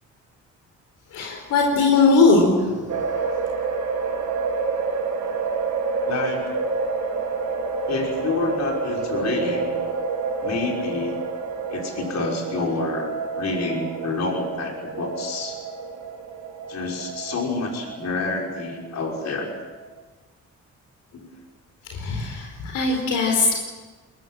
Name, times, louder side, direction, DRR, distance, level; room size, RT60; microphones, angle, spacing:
voice 1, 1.1-3.0 21.9-23.5, left 3 dB, 85° left, 1 dB, 4.6 m, -20 dB
sound 1, 2.9-19.9, right 4 dB, 75° right, 4.2 m, -28 dB
voice 2, 6.1-6.5 7.9-9.8 10.4-11.2 11.7-15.6 16.7-19.5 21.1-21.3, left 3 dB, 60° left, 0 dB, 5.9 m, -28 dB
22.5 x 21.5 x 7.7 m, 1.3 s
cardioid pair, 90°, 30 cm